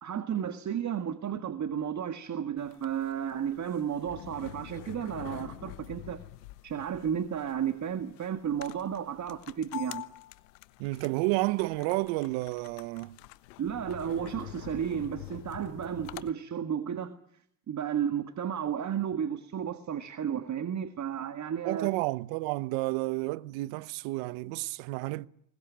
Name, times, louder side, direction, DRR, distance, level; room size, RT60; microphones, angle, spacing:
voice 1, 0.0-6.2 6.6-10.0 13.6-17.2 17.7-21.9, right 8 dB, 35° right, 1.8 m, -33 dB
sound 1, 2.6-16.3, left 18 dB, 80° left, 1.3 m, -46 dB
voice 2, 10.8-13.2 21.6-25.3, right 21 dB, 70° right, 1.1 m, -31 dB
21.5 x 20.0 x 9.4 m
supercardioid pair, 90°, 49 cm